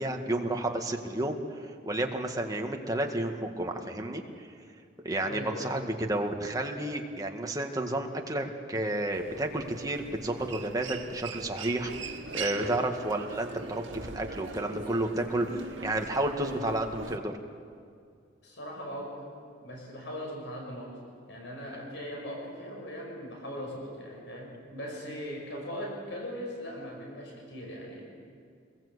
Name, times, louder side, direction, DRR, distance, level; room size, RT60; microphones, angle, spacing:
voice 1, 0.0-1.4 1.8-4.5 5.0-11.9 12.3-17.4, right 1 dB, 20° right, 3 dB, 1.9 m, -31 dB
voice 2, 5.3-5.8 18.4-21.0 21.3-28.0, equal, 65° left, -1 dB, 6.4 m, -39 dB
Human voice, 9.1-17.2, right 4 dB, 90° right, 2.0 m, -41 dB
27.0 x 21.5 x 8.3 m, 2.3 s
head